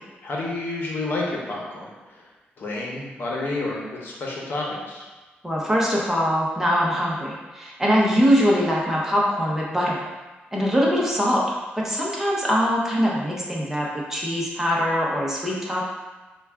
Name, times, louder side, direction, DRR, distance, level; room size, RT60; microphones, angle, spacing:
voice 1, 0.2-2.2 2.6-5.0, left 2 dB, 55° left, -3 dB, 0.9 m, -30 dB
voice 2, 5.4-10.0 10.5-11.5 11.8-15.9, equal, 10° right, -4 dB, 0.7 m, -22 dB
5.4 x 2.3 x 3.5 m, 1.2 s
wide cardioid pair, 130°, 4 cm